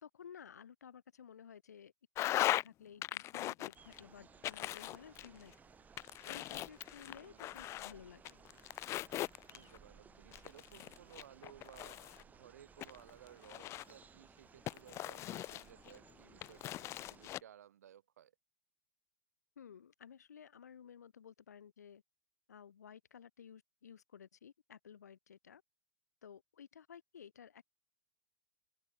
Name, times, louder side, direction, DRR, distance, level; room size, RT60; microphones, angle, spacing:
voice 1, 0.0-1.9 2.3-5.5 6.2-8.4 19.6-22.0 22.5-25.6 26.2-27.6, left 8 dB, 75° left, 3.3 m, -55 dB
sound 1, 2.2-2.7 3.0-4.0 4.4-5.5 6.0-7.9 8.3-9.8 10.3-12.2 12.8-14.0 14.7-16.0 16.4-17.4, left 15 dB, 30° left, 0.8 m, -39 dB
sound 2, 3.7-17.4, right 6 dB, 20° right, 3.0 m, -61 dB
voice 2, 7.0-7.6 9.5-18.3, right 10 dB, 65° right, 7.6 m, -59 dB
open air
figure-of-eight pair, 100°, 9 cm